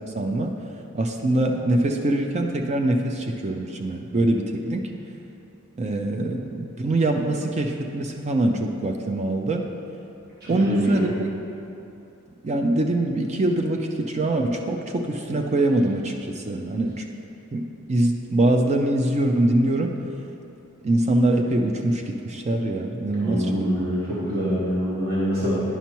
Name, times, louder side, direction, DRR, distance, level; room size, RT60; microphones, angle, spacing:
voice 1, 0.1-0.5 0.9-4.9 5.8-9.7 10.5-11.1 12.4-17.0 17.5-17.6 17.9-19.9 20.8-23.8, right 1 dB, 30° right, 3 dB, 0.4 m, -23 dB
voice 2, 10.5-11.1 23.2-25.6, equal, 45° right, -9 dB, 1.3 m, -25 dB
10.0 x 5.7 x 3.0 m, 2.8 s
head